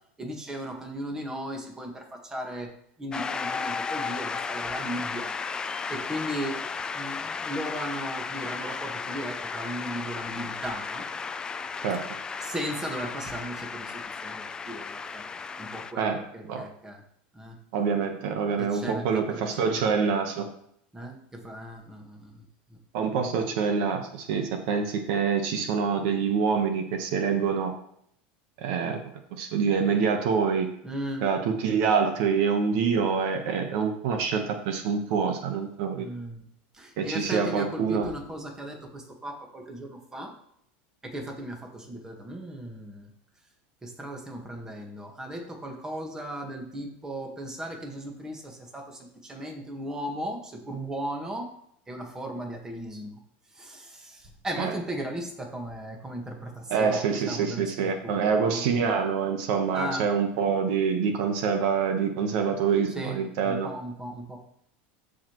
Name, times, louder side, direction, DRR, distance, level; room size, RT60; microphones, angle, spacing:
voice 1, 0.2-2.7 3.0-5.4 5.9-6.6 6.9-11.1 12.4-15.2 15.6-17.0 17.3-17.6 18.6-20.0 20.9-22.4 22.7-22.8 30.8-31.3 35.9-36.4 36.7-40.3 41.0-43.1 43.8-51.5 51.9-53.2 53.5-58.7 59.7-60.1 62.9-64.4, right 1 dB, 10° right, 2 dB, 1.5 m, -37 dB
Shout / Cheering / Applause, 3.1-15.9, left 5 dB, 15° left, 0.4 m, -34 dB
voice 2, 16.0-16.6 17.7-20.5 22.9-27.7 28.6-29.0 29.4-30.7 31.2-36.1 37.0-38.1 54.6-54.7 56.7-63.7, right 6 dB, 60° right, 5 dB, 1.1 m, -26 dB
14.0 x 4.9 x 3.1 m, 0.71 s
supercardioid pair, 150°, 6 cm